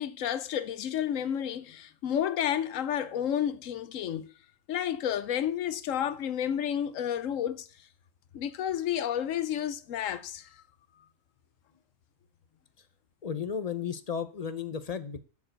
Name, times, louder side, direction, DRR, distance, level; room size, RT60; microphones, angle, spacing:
voice 1, 0.0-4.3 4.7-7.7 8.3-10.5, left 10 dB, 80° left, 1.1 m, -31 dB
voice 2, 13.2-15.2, left 7 dB, 40° left, 0.6 m, -34 dB
7.1 x 6.6 x 7.8 m
omnidirectional pair, 1.3 m